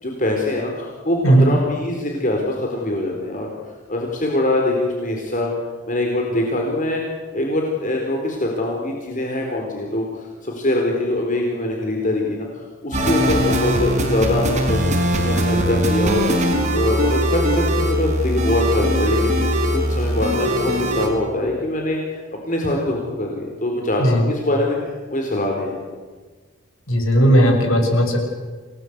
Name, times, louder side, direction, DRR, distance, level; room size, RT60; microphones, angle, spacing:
voice 1, 0.0-5.5 5.9-7.0 7.3-16.4 16.7-25.8, left 1 dB, 40° left, 0 dB, 4.2 m, -23 dB
sound 1, 12.9-21.1, equal, 35° right, 5.3 m, -20 dB
voice 2, 26.9-28.2, right 1 dB, 80° left, 3 dB, 6.9 m, -15 dB
28.5 x 19.5 x 8.2 m, 1.4 s
head